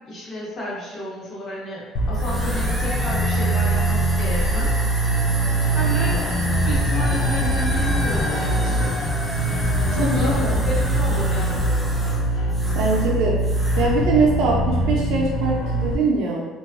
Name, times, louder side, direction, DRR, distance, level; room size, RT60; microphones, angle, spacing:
voice 1, 0.1-4.7 5.7-6.2 6.6-9.0 9.9-11.8, equal, 40° left, -5 dB, 0.8 m, -32 dB
sound 1, 1.9-16.0, right 1 dB, 70° left, 0.3 m, -22 dB
sound 2, 2.1-13.1 13.4-13.9, equal, 5° right, 0.4 m, -30 dB
voice 2, 10.0-10.6 12.7-13.4 13.8-16.5, right 3 dB, 75° right, -2 dB, 0.4 m, -22 dB
2.5 x 2.2 x 2.4 m, 1.3 s
cardioid pair, 120°, 0 cm